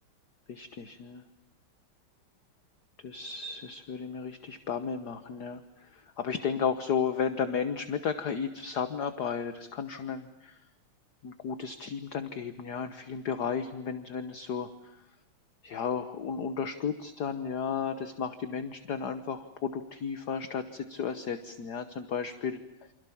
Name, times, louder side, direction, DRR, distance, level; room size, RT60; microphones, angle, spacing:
voice 1, 0.5-1.2 3.0-10.6 11.2-14.7 15.6-22.6, left 6 dB, 55° left, 10 dB, 1.6 m, -33 dB
29.0 x 26.5 x 7.1 m, 0.84 s
omnidirectional pair, 2.3 m